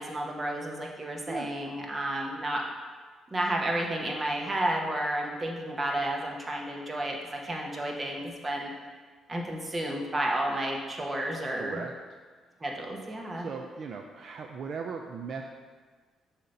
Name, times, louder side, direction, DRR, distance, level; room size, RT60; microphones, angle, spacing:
voice 1, 0.0-2.6 3.3-8.7 9.3-11.8 12.6-13.5, right 1 dB, 25° right, 0 dB, 1.1 m, -31 dB
voice 2, 11.5-11.9 13.4-15.5, right 5 dB, 55° right, 3 dB, 0.4 m, -38 dB
7.2 x 2.9 x 5.3 m, 1.5 s
cardioid pair, 90°, 0 cm